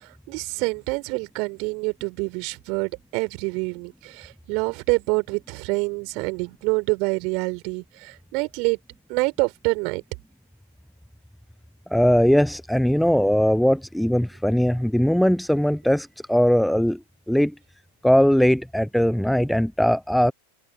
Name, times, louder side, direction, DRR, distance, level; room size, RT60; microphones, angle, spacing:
voice 1, 0.3-8.8 9.1-10.0, right 31 dB, 45° right, 4.2 m, -26 dB
voice 2, 11.9-17.0 17.3-17.5 18.0-20.3, equal, ahead, 0.6 m, -20 dB
figure-of-eight pair, 90°, 0 cm